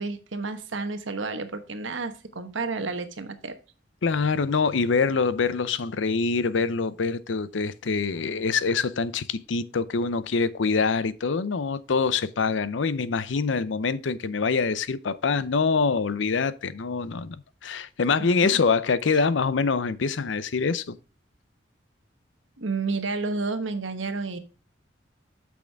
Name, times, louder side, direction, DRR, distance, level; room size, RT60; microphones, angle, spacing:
voice 1, 0.0-3.6 18.2-18.6 22.6-24.4, right 3 dB, 85° right, 1.2 m, -31 dB
voice 2, 4.0-17.4 17.6-21.0, left 4 dB, 75° left, 0.6 m, -25 dB
8.5 x 6.2 x 3.4 m
head